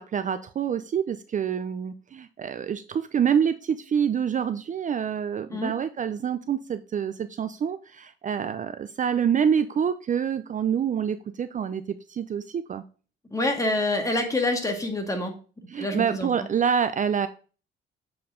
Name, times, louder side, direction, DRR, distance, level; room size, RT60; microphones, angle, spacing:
voice 1, 0.0-12.8 15.7-17.3, right 7 dB, 40° right, 11 dB, 0.5 m, -27 dB
voice 2, 13.3-15.3 15.8-16.3, left 2 dB, 15° left, 3 dB, 1.8 m, -26 dB
7.5 x 4.5 x 3.7 m, 0.37 s
cardioid pair, 90°, 20 cm